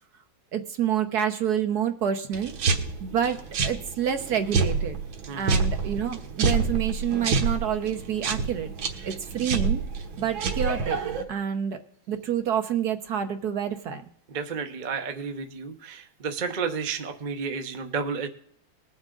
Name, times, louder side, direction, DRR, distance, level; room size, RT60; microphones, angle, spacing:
voice 1, 0.5-2.5 3.0-5.0 5.3-8.7 9.0-9.8 10.2-11.0 11.3-11.8 12.1-14.0, right 9 dB, 60° right, 7 dB, 1.3 m, -28 dB
sound 1, 2.3-11.2, right 4 dB, 90° right, 2.1 m, -28 dB
voice 2, 14.3-18.3, right 5 dB, 35° right, 6 dB, 0.7 m, -32 dB
20.5 x 7.3 x 3.8 m, 0.64 s
omnidirectional pair, 2.1 m